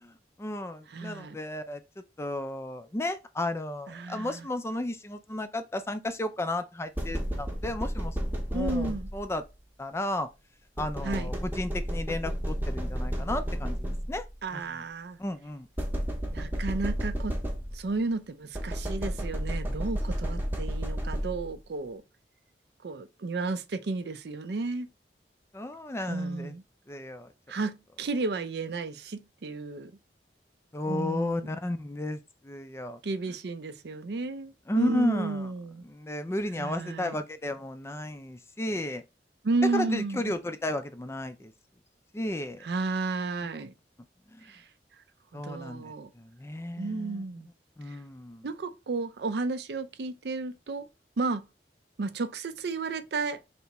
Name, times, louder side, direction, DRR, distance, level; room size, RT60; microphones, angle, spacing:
voice 1, 0.4-8.2 8.5-9.4 9.8-10.3 10.8-14.2 14.5-14.8 15.2-15.7 25.5-26.5 26.9-27.3 30.7-33.0 34.7-35.5 35.8-39.0 39.7-41.5 42.1-42.7 44.3-44.5 45.3-47.2 47.8-48.5, left 1 dB, 15° left, 0.4 m, -33 dB
voice 2, 0.9-1.4 3.9-4.5 8.5-9.1 11.0-11.3 14.4-15.2 16.3-17.4 17.7-22.0 22.8-24.9 26.1-26.6 27.5-29.9 30.9-31.6 33.0-35.8 36.6-37.2 39.4-40.4 42.6-43.7 44.4-44.6 45.3-46.1 46.8-47.5 47.9-48.0 48.4-50.8 51.2-51.4 52.0-53.4, right 3 dB, 65° right, 0.5 m, -32 dB
sound 1, 7.0-9.4 10.8-14.3 15.8-18.0 18.5-21.6, equal, 10° right, 0.8 m, -32 dB
3.4 x 2.8 x 4.1 m
head